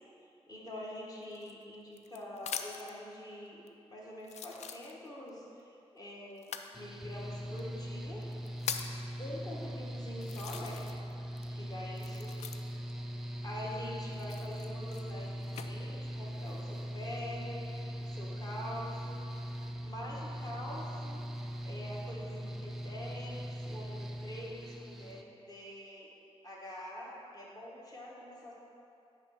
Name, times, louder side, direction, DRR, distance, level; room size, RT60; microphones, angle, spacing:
voice 1, 0.5-3.6 3.9-8.2 9.2-10.8 11.5-12.3 13.4-17.6 18.0-19.2 19.8-21.2 21.6-26.1 26.4-28.5, left 1 dB, 35° left, -5 dB, 1.2 m, -45 dB
sound 1, 1.3-3.0 3.7-3.8 4.2-5.3 6.4-6.7 7.6-7.7 8.2-9.0 9.7-9.8 10.2-11.1 11.4-12.9 14.1-15.7 16.3-16.8, left 7 dB, 90° left, 0.4 m, -42 dB
Mechanical fan, 6.7-25.2, equal, 5° right, 0.3 m, -41 dB
8.6 x 3.1 x 5.6 m, 2.7 s
wide cardioid pair, 150°, 11 cm